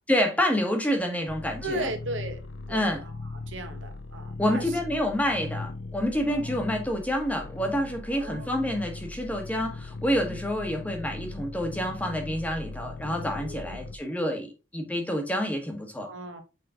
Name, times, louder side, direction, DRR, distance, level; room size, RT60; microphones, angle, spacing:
voice 1, 0.1-1.9 2.7-3.0 4.4-16.1, equal, 5° left, 1.3 m, -28 dB
sound 1, 1.3-13.9, left 3 dB, 60° left, 0.7 m, -39 dB
voice 2, 1.6-3.1 3.4-4.7 6.3-6.6 8.1-8.5 13.4-13.8 16.0-16.4, right 1 dB, 70° right, 1.5 m, -37 dB
7.2 x 5.0 x 3.8 m
head